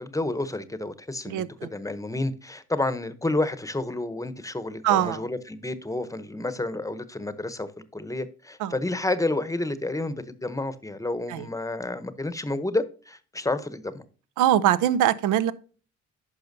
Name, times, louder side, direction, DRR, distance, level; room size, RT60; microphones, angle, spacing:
voice 1, 0.0-1.4 1.7-14.0, left 2 dB, 10° left, 0.8 m, -30 dB
voice 2, 1.3-1.7 4.8-5.2 8.6-8.7 11.3-11.4 14.4-15.5, right 11 dB, 85° right, 0.6 m, -22 dB
10.5 x 5.6 x 2.7 m
cardioid pair, 90°, 30 cm